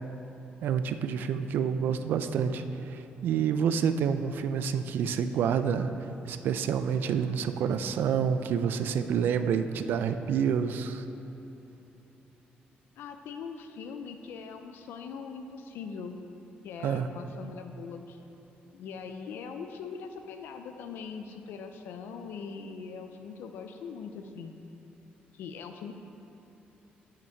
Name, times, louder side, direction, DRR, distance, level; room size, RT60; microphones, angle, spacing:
voice 1, 0.6-5.9 6.3-11.1 16.8-17.1, right 7 dB, 70° right, 10 dB, 0.4 m, -28 dB
voice 2, 13.0-16.2 16.6-18.2 18.7-24.5 25.3-25.9, left 5 dB, 85° left, 6 dB, 0.5 m, -41 dB
8.8 x 6.0 x 4.5 m, 3.0 s
cardioid pair, 155°, 4 cm